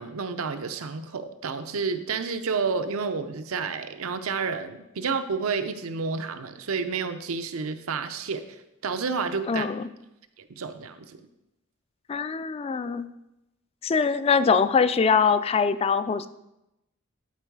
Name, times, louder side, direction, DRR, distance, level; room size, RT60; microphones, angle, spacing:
voice 1, 0.0-8.4 8.8-9.7 10.6-11.2, right 5 dB, 85° right, 9 dB, 0.7 m, -30 dB
voice 2, 9.5-9.9 12.1-13.1 13.8-16.3, left 5 dB, 30° left, 14 dB, 0.3 m, -23 dB
11.5 x 4.6 x 4.7 m, 0.92 s
head